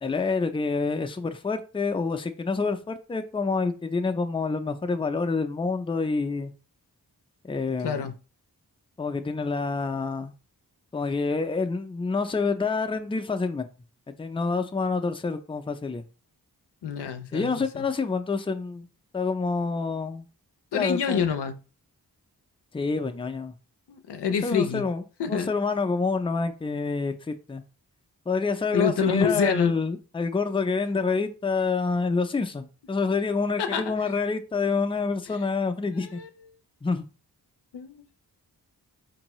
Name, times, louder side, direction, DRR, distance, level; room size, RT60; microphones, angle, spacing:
voice 1, 0.0-6.5 7.5-8.1 9.0-10.3 10.9-13.7 14.2-16.0 17.3-18.9 19.1-20.3 20.7-21.2 22.7-23.5 24.4-25.0 25.3-27.6 28.3-36.2 36.8-37.0, left 4 dB, 15° left, 0.4 m, -27 dB
voice 2, 16.8-17.8 20.7-21.6 23.9-24.8 25.2-25.5 28.7-29.7 33.6-33.9 36.2-36.3 37.7-38.0, left 6 dB, 85° left, 0.6 m, -26 dB
4.6 x 2.7 x 3.0 m
wide cardioid pair, 55°, 39 cm